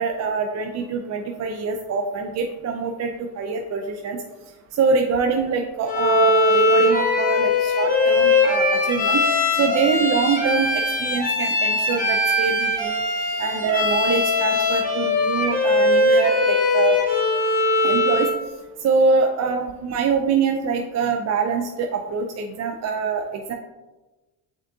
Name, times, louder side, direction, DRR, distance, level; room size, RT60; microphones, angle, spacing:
voice 1, 0.0-4.2 4.7-9.3 9.6-13.0 13.4-17.0 17.8-18.3 18.8-23.2 23.5-23.6, right 5 dB, 45° right, 3 dB, 0.4 m, -24 dB
Bowed string instrument, 5.9-18.4, left 2 dB, 20° left, 1.2 m, -20 dB
5.0 x 3.6 x 2.6 m, 1.2 s
supercardioid pair, 80°, 39 cm